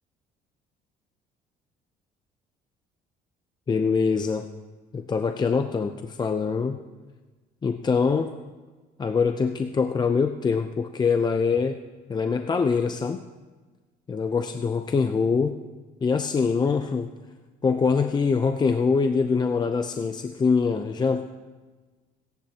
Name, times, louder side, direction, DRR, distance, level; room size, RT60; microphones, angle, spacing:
voice 1, 3.7-4.5 4.9-6.8 7.6-8.3 9.0-11.8 12.1-13.2 14.1-15.6 16.0-17.1 17.6-21.3, left 5 dB, 25° left, 7 dB, 0.6 m, -24 dB
27.0 x 10.5 x 2.9 m, 1.3 s
cardioid pair, 110°, 17 cm